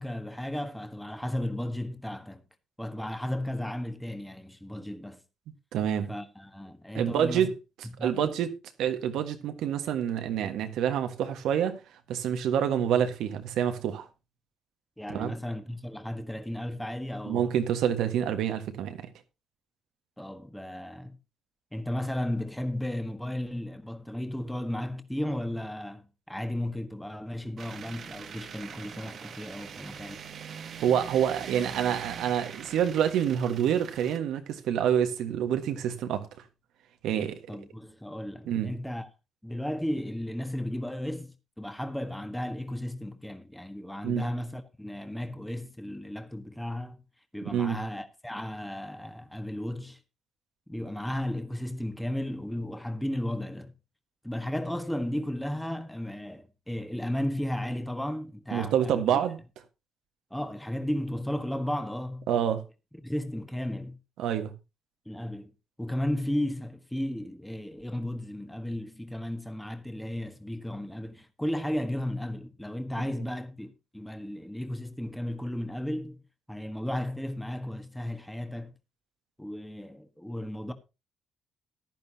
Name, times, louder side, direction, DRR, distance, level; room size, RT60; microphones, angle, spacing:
voice 1, 0.0-2.4 2.8-5.2 6.1-7.5 8.0-8.3 15.0-17.5 20.2-21.2 21.7-30.2 37.5-39.1 39.4-47.0 47.3-50.0 50.7-53.7 54.2-59.0 60.3-62.3 63.0-64.0 65.0-65.5 65.8-76.2 76.5-78.7 79.4-80.7, left 1 dB, 5° left, 1.4 m, -34 dB
voice 2, 5.7-6.1 6.9-7.5 8.0-8.5 8.8-11.8 12.1-14.1 15.1-15.3 17.2-19.0 30.5-36.3 37.0-37.4 38.5-38.7 44.0-44.2 47.5-47.8 58.5-59.4 62.3-62.6 64.2-64.5, right 9 dB, 85° right, 1.5 m, -27 dB
sound 1, 27.6-34.2, right 7 dB, 60° right, 1.1 m, -43 dB
15.0 x 10.5 x 2.8 m
cardioid pair, 90°, 0 cm